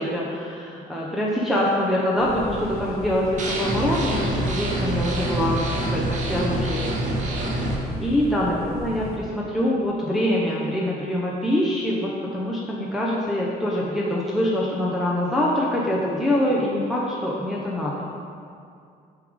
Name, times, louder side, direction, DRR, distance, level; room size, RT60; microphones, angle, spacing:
voice 1, 0.0-6.9 8.0-17.9, left 1 dB, ahead, -6 dB, 0.7 m, -24 dB
sound 1, 2.2-9.2, left 2 dB, 65° left, 0.9 m, -36 dB
sound 2, 3.4-7.8, right 1 dB, 50° right, 1.1 m, -26 dB
6.5 x 3.6 x 5.0 m, 2.4 s
cardioid pair, 110°, 17 cm